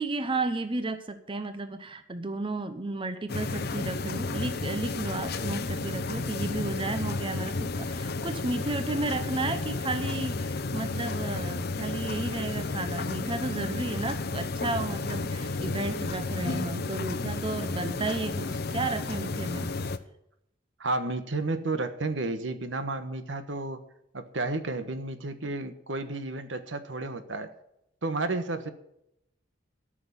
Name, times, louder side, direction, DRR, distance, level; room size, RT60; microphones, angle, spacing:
voice 1, 0.0-19.7, right 2 dB, 30° right, 10 dB, 0.7 m, -33 dB
sound 1, 3.3-20.0, left 3 dB, 55° left, 0.8 m, -32 dB
voice 2, 20.8-23.8 24.1-27.5 28.0-28.7, right 2 dB, 75° right, 10 dB, 1.3 m, -32 dB
14.0 x 6.2 x 9.7 m, 0.78 s
head